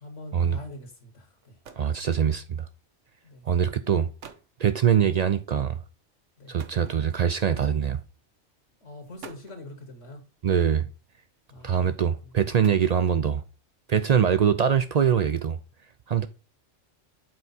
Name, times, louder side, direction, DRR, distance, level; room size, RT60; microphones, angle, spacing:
voice 1, 0.0-1.6 3.2-3.5 6.4-6.5 8.8-10.2 11.5-11.9 12.2-12.4, left 2 dB, 80° left, 1.8 m, -43 dB
sound 1, 1.4-2.0 3.0-3.2 3.9-4.0 4.2-4.6 6.6-7.4 8.4-8.5 9.0-9.7 11.0-11.4 12.3-13.3, right 6 dB, 80° right, 1.3 m, -48 dB
voice 2, 1.8-2.7 3.5-4.1 4.6-5.8 6.5-8.0 10.4-10.9 11.6-13.4 13.9-15.6 16.1-16.3, right 8 dB, 60° right, 0.4 m, -23 dB
7.8 x 4.6 x 4.1 m
omnidirectional pair, 1.2 m